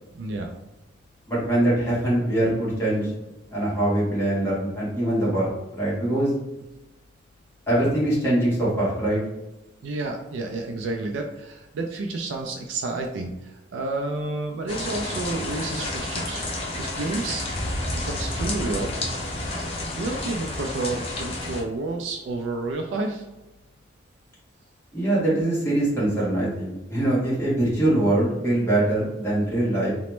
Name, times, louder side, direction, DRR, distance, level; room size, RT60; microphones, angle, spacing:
voice 1, 0.1-0.5 9.8-16.4 16.8-17.5 18.0-18.9 20.0-23.3, right 2 dB, 90° right, 3 dB, 0.4 m, -30 dB
voice 2, 1.3-3.1 3.5-6.3 7.7-9.2 24.9-29.9, right 1 dB, 15° left, -8 dB, 1.1 m, -23 dB
sound 1, 14.7-21.6, left 1 dB, 30° left, 0.5 m, -30 dB
2.9 x 2.1 x 3.1 m, 0.98 s
head